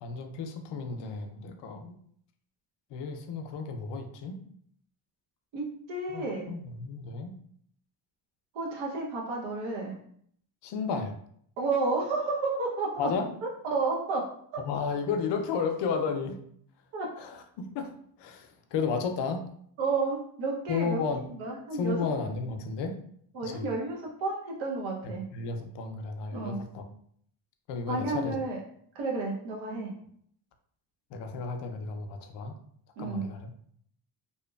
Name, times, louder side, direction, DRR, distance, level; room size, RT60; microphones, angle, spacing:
voice 1, 0.0-2.0 2.9-4.4 6.1-7.3 10.6-11.1 13.0-13.3 14.6-16.4 17.2-19.5 20.7-21.3 21.7-23.0 23.4-23.7 25.0-26.8 27.7-28.4 31.1-32.5 33.0-33.5, left 5 dB, 65° left, 6 dB, 0.5 m, -33 dB
voice 2, 5.5-6.5 8.5-10.0 11.6-13.1 13.7-14.6 16.9-17.1 19.8-21.0 21.4-22.0 23.3-25.3 26.3-26.6 27.9-28.6 28.9-29.9 33.0-33.2, right 3 dB, 90° right, -1 dB, 0.8 m, -31 dB
2.7 x 2.1 x 2.2 m, 0.65 s
cardioid pair, 85°, 45 cm